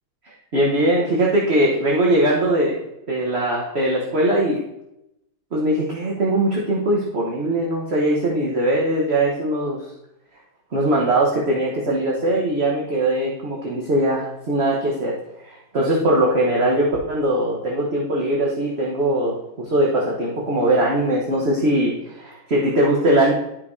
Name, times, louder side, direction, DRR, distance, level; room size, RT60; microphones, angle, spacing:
voice 1, 0.5-2.8 3.1-4.6 5.5-9.8 10.7-15.2 15.4-23.3, right 1 dB, 40° right, -4 dB, 1.1 m, -20 dB
12.5 x 5.8 x 2.7 m, 0.86 s
omnidirectional pair, 2.4 m